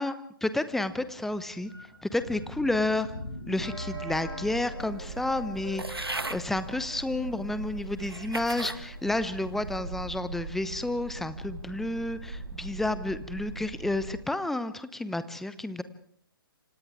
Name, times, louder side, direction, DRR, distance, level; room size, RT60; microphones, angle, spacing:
voice 1, 0.4-1.7 2.0-3.1 3.5-15.8, left 2 dB, ahead, 13 dB, 0.9 m, -31 dB
sound 1, 0.7-11.0 11.3-11.4 11.6-11.8 12.2-13.2, equal, 90° left, 6.9 m, -45 dB
sound 2, 3.9-14.2, right 3 dB, 60° right, 4.8 m, -41 dB
sound 3, 5.8-6.4 7.2-7.3 8.0-8.8 9.4-9.8, right 2 dB, 85° right, 1.5 m, -36 dB
28.5 x 26.5 x 3.6 m, 0.62 s
figure-of-eight pair, 130°, 12 cm